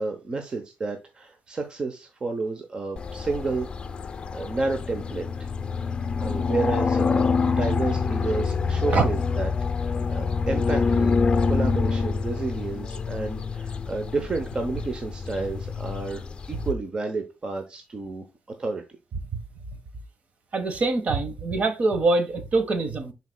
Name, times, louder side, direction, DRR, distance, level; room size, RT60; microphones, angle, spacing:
voice 1, 0.0-3.7 4.3-5.5 6.2-9.5 9.7-11.1 11.5-16.2 16.5-18.2 18.6-18.8, right 3 dB, 30° right, 0.8 m, -30 dB
sound 1, 3.0-16.7, left 5 dB, 35° left, 0.5 m, -26 dB
voice 2, 20.5-23.1, right 3 dB, 50° right, 1.2 m, -24 dB
10.5 x 4.1 x 2.2 m
wide cardioid pair, 160°, 3 cm